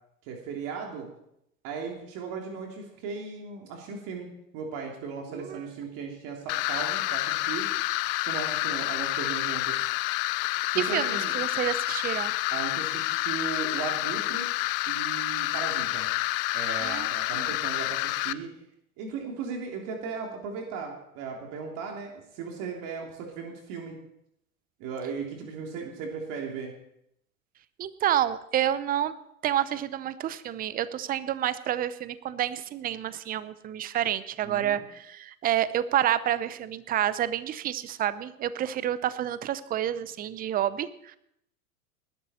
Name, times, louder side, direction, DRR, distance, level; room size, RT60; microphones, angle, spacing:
voice 1, 0.2-1.1 1.6-7.7 8.2-9.9 10.7-11.3 12.5-14.5 14.9-16.1 16.5-18.5 19.0-24.0 24.8-26.7 34.4-34.8, right 5 dB, 45° right, 1 dB, 3.3 m, -37 dB
voice 2, 5.3-5.6 10.8-12.3 16.8-17.1 17.3-17.5 27.8-29.2 29.4-41.2, right 11 dB, 20° right, 16 dB, 0.7 m, -29 dB
sound 1, 6.5-18.3, left 19 dB, 40° left, 0.6 m, -29 dB
19.5 x 12.0 x 4.3 m, 0.76 s
hypercardioid pair, 105°, 45 cm